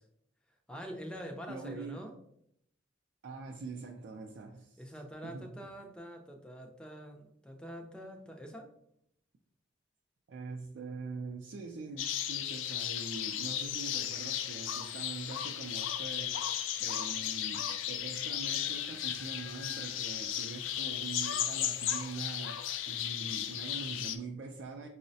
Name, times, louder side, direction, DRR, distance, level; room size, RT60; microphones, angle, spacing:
voice 1, 0.7-2.2 4.8-8.7, equal, 5° left, 2 dB, 0.4 m, -45 dB
voice 2, 1.5-2.0 3.2-4.9 5.2-5.5 10.3-16.5 16.8-24.9, right 3 dB, 70° right, 2 dB, 0.4 m, -43 dB
sound 1, 12.0-24.2, left 10 dB, 90° left, 0.3 m, -35 dB
5.4 x 2.0 x 2.6 m, 0.73 s
head